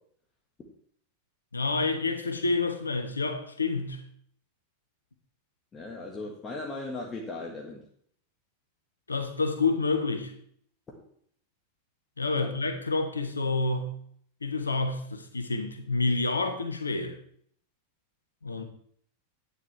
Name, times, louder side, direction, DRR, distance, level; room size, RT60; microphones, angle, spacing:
voice 1, 1.5-4.0 9.1-10.3 12.2-13.9 14.4-17.2 18.4-18.6, left 3 dB, 75° left, 1.1 m, -28 dB
voice 2, 5.7-7.8 12.4-12.5, left 2 dB, 20° left, 1.6 m, -37 dB
11.0 x 9.3 x 3.4 m
figure-of-eight pair, 90°, 0 cm